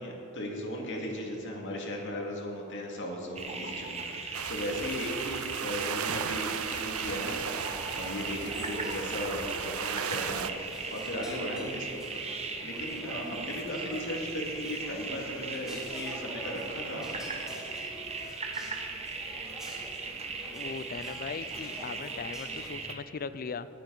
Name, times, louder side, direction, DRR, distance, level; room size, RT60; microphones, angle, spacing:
voice 1, 0.0-7.4 7.9-12.1 12.6-17.3, left 1 dB, 60° left, 0 dB, 2.3 m, -37 dB
sound 1, 3.4-22.9, right 4 dB, 30° right, 1.0 m, -38 dB
sound 2, 4.3-10.5, right 8 dB, 75° right, 0.5 m, -36 dB
sound 3, 7.4-22.7, equal, 5° right, 2.3 m, -47 dB
voice 2, 20.4-23.7, left 5 dB, 45° left, 14 dB, 0.4 m, -39 dB
19.0 x 10.5 x 4.0 m, 2.9 s
head